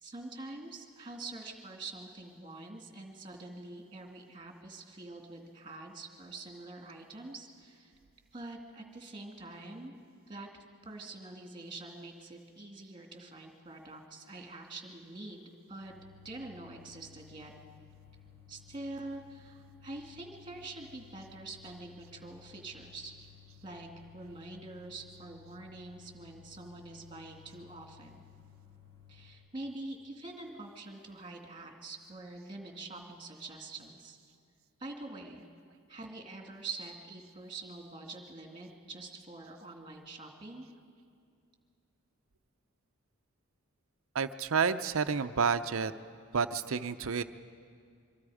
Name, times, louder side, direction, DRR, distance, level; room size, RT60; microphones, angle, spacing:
voice 1, 0.0-7.9 8.3-9.9 10.3-10.5 10.8-15.9 16.2-17.5 18.5-23.1 23.6-23.9 24.1-28.2 29.1-34.2 34.8-35.4 35.9-40.6, right 2 dB, 20° right, 2 dB, 2.4 m, -45 dB
sound 1, 15.8-29.3, left 9 dB, 50° left, 4.5 m, -57 dB
voice 2, 44.1-45.9 46.3-47.2, right 5 dB, 65° right, 11 dB, 0.6 m, -30 dB
25.0 x 24.0 x 5.0 m, 2.3 s
head